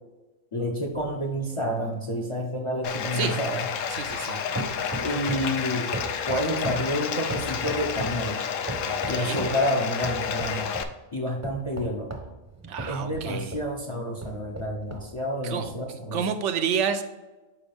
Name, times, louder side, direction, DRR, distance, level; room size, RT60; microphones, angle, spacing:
voice 1, 0.5-3.7 5.0-5.9 6.3-8.4 9.1-10.7 11.1-12.1 12.9-16.3, equal, 30° left, 1 dB, 0.6 m, -29 dB
sound 1, 0.9-4.3 4.6-5.6 5.9-8.2 8.7-9.6 10.0-10.9 11.4-13.7 14.2-15.1 15.6-15.7, right 2 dB, 15° right, 0.7 m, -37 dB
Bathtub (filling or washing), 2.8-10.8, left 7 dB, 75° left, 0.9 m, -30 dB
voice 2, 3.9-4.4 8.9-9.4 12.7-13.5 15.4-15.7 16.1-17.0, right 7 dB, 70° right, 8 dB, 0.9 m, -29 dB
7.1 x 4.9 x 3.5 m, 1.2 s
omnidirectional pair, 1.4 m